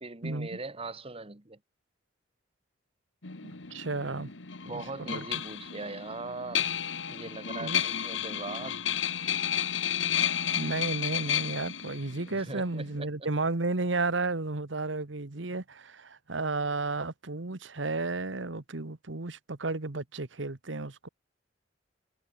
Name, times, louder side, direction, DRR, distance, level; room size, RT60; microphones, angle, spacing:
voice 1, 0.0-1.6 4.7-6.7 7.1-8.8 12.3-13.1, right 3 dB, 30° right, 1.7 m, -40 dB
sound 1, 3.2-13.0, left 9 dB, 80° left, 1.7 m, -32 dB
voice 2, 3.4-4.3 4.6-4.8 5.1-5.2 7.6-7.9 10.5-21.1, right 3 dB, 75° right, 1.3 m, -33 dB
head